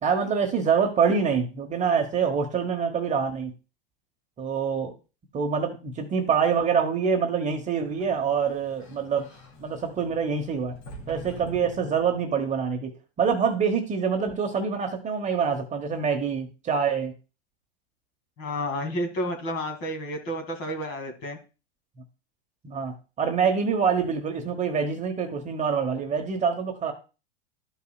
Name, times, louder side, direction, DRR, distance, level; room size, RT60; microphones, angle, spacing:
voice 1, 0.0-3.5 4.4-4.9 5.3-9.3 9.6-10.7 11.1-12.9 13.2-17.1 22.6-26.9, right 6 dB, 25° right, 5 dB, 1.0 m, -25 dB
Sliding door, 7.7-12.4, left 1 dB, 75° left, 3.0 m, -46 dB
voice 2, 18.4-21.4, equal, 45° left, 5 dB, 2.2 m, -31 dB
13.0 x 5.5 x 2.3 m, 0.32 s
hypercardioid pair, 120°, 31 cm